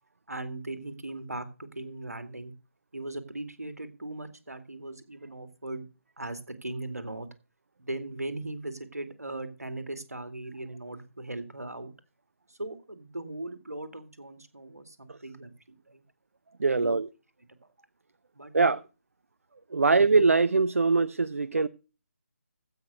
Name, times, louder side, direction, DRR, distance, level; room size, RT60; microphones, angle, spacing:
voice 1, 0.3-2.5 2.9-5.8 6.2-7.3 7.8-11.9 12.5-16.0 16.7-17.0 18.3-18.8 19.8-20.0, right 2 dB, 80° right, 10 dB, 2.3 m, -39 dB
voice 2, 16.6-17.1 18.5-18.8 19.7-21.7, right 4 dB, 65° right, 15 dB, 0.6 m, -22 dB
15.5 x 6.1 x 6.5 m, 0.34 s
figure-of-eight pair, 150°, 8 cm